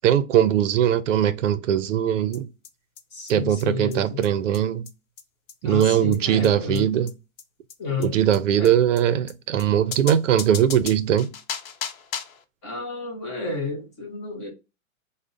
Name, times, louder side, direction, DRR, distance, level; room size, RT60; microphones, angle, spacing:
voice 1, 0.0-2.5 3.3-4.9 5.6-7.1 8.0-11.3, right 10 dB, 65° right, 0.5 m, -20 dB
sound 1, 2.3-2.4 2.6-2.7 3.0-3.1 3.3-3.4 3.6-3.7 3.9-4.0 4.2-4.3 4.5-4.6 4.9-5.0 5.2-5.3 5.5-5.6 5.8-5.9 6.1-6.2 6.4-6.5 6.8-6.9 7.1-7.2 7.4-7.5 7.7-7.8 8.0-8.1 8.3-8.4 8.6-8.7 9.0-9.1 9.3-9.4 9.6-9.7 9.9-12.4, left 7 dB, 80° left, 0.8 m, -35 dB
voice 2, 3.1-4.2 5.6-6.9 7.8-8.2 8.6-8.8 12.6-14.5, left 4 dB, 20° left, 0.5 m, -31 dB
4.9 x 2.1 x 2.5 m
hypercardioid pair, 155°, 41 cm